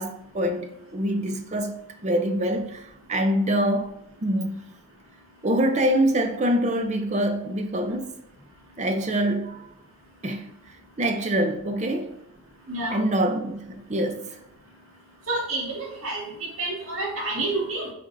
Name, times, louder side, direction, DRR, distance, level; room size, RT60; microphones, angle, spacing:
voice 1, 0.0-1.8 2.0-3.9 4.2-4.7 5.4-8.1 8.8-9.7 10.2-10.5 11.0-12.2 12.9-14.4, right 1 dB, 30° right, 0.6 m, -25 dB
voice 2, 15.3-17.9, right 2 dB, 75° right, 1.8 m, -29 dB
8.4 x 5.1 x 2.6 m
head